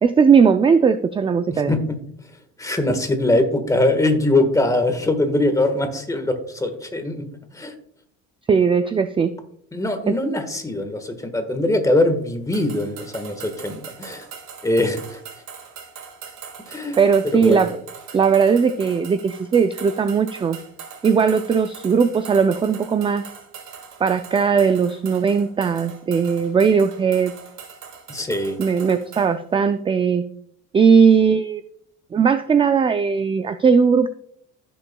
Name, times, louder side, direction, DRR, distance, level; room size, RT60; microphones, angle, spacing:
voice 1, 0.0-1.8 8.5-9.3 10.1-10.2 17.0-17.7 18.1-20.6 21.0-23.3 24.0-27.3 28.6-30.2 30.7-31.6 32.1-34.1, right 6 dB, 20° right, 10 dB, 0.3 m, -18 dB
voice 2, 1.5-1.8 2.6-7.3 7.5-7.7 9.7-14.2 14.6-15.2 16.7-17.0 17.2-17.6 28.1-28.6, left 1 dB, 10° left, 7 dB, 1.4 m, -22 dB
sound 1, 12.5-29.3, right 6 dB, 65° right, 2.3 m, -41 dB
15.5 x 6.9 x 2.2 m, 0.66 s
cardioid pair, 125°, 29 cm